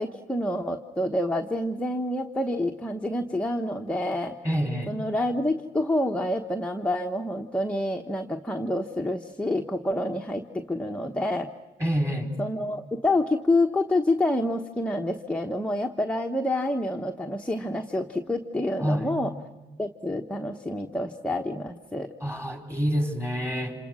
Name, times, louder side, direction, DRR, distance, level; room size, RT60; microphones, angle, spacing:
voice 1, 0.0-4.4 4.9-11.5 12.4-19.3 19.8-22.1, left 1 dB, 5° left, 3 dB, 1.1 m, -27 dB
voice 2, 4.4-4.9 11.8-12.3 18.8-19.1 22.2-23.8, equal, 15° right, 4 dB, 4.6 m, -27 dB
27.5 x 27.0 x 6.3 m, 1.3 s
cardioid pair, 90°, 20 cm